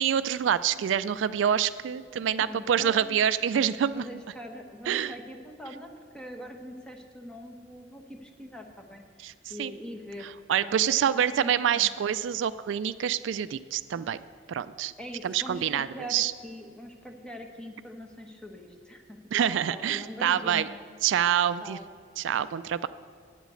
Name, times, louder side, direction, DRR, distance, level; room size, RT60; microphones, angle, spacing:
voice 1, 0.0-4.0 4.9-5.1 9.2-9.3 9.6-9.7 10.2-14.2 14.5-14.9 15.2-16.3 19.3-20.7 21.0-21.8 22.2-22.9, right 9 dB, 75° right, 14 dB, 0.3 m, -26 dB
voice 2, 2.4-3.2 3.8-10.3 10.6-11.9 15.0-20.9 21.6-21.9, equal, 5° left, 3 dB, 1.0 m, -43 dB
9.3 x 8.1 x 7.8 m, 2.2 s
head